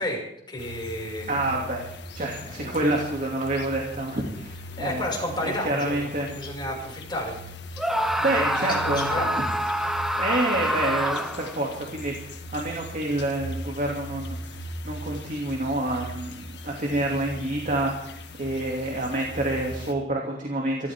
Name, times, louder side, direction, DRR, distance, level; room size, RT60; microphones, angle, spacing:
voice 1, 0.0-1.6 2.4-2.9 4.8-7.4 8.2-8.5 8.8-9.3, left 1 dB, 25° left, -1 dB, 6.0 m, -32 dB
sound 1, 0.6-19.9, equal, 65° left, 1.7 m, -39 dB
voice 2, 1.3-1.9 2.1-5.1 5.4-6.3 8.2-9.4 10.2-20.9, right 1 dB, 45° right, 0 dB, 2.7 m, -28 dB
Screaming, 7.8-11.6, equal, ahead, 0.9 m, -26 dB
25.0 x 14.5 x 3.7 m, 0.76 s
head